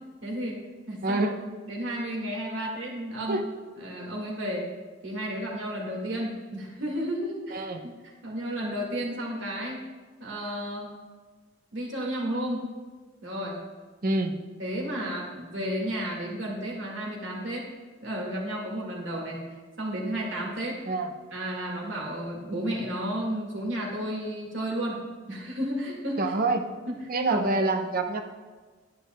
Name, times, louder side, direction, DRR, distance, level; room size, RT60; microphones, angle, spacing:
voice 1, 0.2-0.6 0.9-1.3 1.7-3.4 3.8-4.7 5.0-7.7 8.2-9.8 10.2-10.9 11.7-12.7 13.2-13.6 14.6-17.7 18.0-19.4 19.8-20.8 21.3-25.0 25.3-26.2 27.0-27.5, equal, 80° right, -2 dB, 1.8 m, -32 dB
voice 2, 1.0-1.4 2.6-2.7 3.3-3.4 7.5-7.8 14.0-14.4 20.9-21.1 26.2-26.7 27.1-28.2, right 2 dB, 50° right, 5 dB, 0.7 m, -26 dB
9.5 x 9.4 x 2.2 m, 1.4 s
head